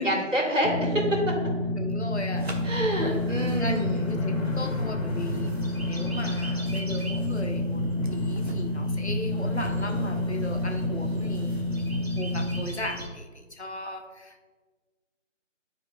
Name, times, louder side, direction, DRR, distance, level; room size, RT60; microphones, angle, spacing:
voice 1, 0.0-1.3 2.6-4.1, equal, 75° right, -1 dB, 1.8 m, -27 dB
sound 1, 0.6-12.6, left 1 dB, 90° left, 1.1 m, -29 dB
voice 2, 1.8-2.6 3.6-7.8 8.1-14.4, left 1 dB, 60° left, 4 dB, 0.8 m, -37 dB
sound 2, 2.4-13.1, equal, 55° right, 0.9 m, -39 dB
10.5 x 4.7 x 2.2 m, 1.4 s
figure-of-eight pair, 175°, 38 cm